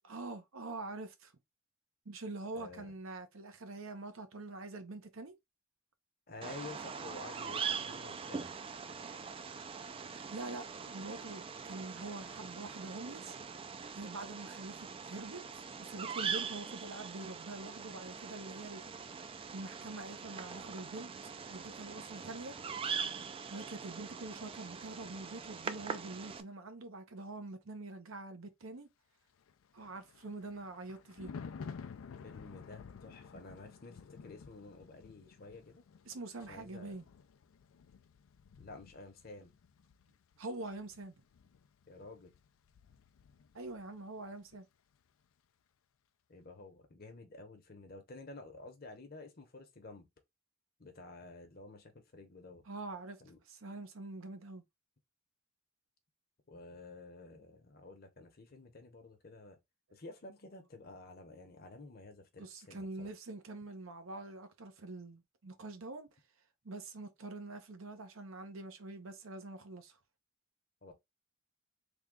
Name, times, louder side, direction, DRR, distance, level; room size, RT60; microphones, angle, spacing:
voice 1, 0.1-1.3 2.1-5.3 10.1-13.4 13.9-18.8 19.5-22.6 23.5-28.9 29.7-31.3 36.1-37.1 40.4-41.2 43.5-44.7 52.7-53.2 53.5-54.6 62.4-66.1 66.6-70.0, right 2 dB, 80° right, 0.8 m, -45 dB
voice 2, 2.5-2.9 6.3-8.5 32.2-35.8 36.4-37.0 38.6-39.6 41.9-42.3 46.3-50.1 50.8-52.7 53.2-53.4 56.5-59.6 59.9-63.1 70.8-70.9, left 3 dB, 45° left, 0.9 m, -51 dB
Bird vocalization bird call bird song, 6.4-26.4, right 6 dB, 25° right, 0.3 m, -42 dB
Thunder, 29.4-44.0 44.3-44.6, left 5 dB, 80° left, 0.4 m, -52 dB
3.5 x 2.3 x 3.6 m
head